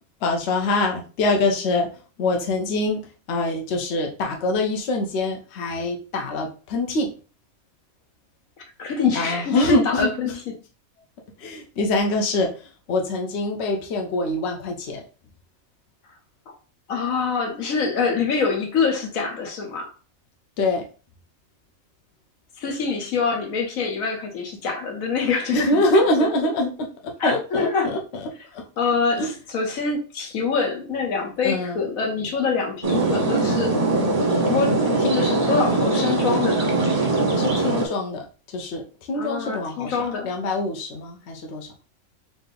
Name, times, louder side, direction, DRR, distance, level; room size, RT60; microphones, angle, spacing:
voice 1, 0.2-1.9 2.2-3.0 3.3-7.1 9.1-10.4 11.4-15.0 20.6-20.8 25.5-28.2 28.5-28.6 29.2-29.3 31.4-31.8 35.1-35.2 37.3-41.7, left 2 dB, 55° left, 0.9 m, -24 dB
voice 2, 8.8-10.5 16.9-19.9 22.6-26.3 27.2-27.9 28.8-33.7 34.5-36.7 39.1-40.3, left 5 dB, 70° left, 1.3 m, -25 dB
sound 1, 32.8-37.9, right 2 dB, 30° right, 0.8 m, -21 dB
4.1 x 2.6 x 3.4 m
omnidirectional pair, 1.5 m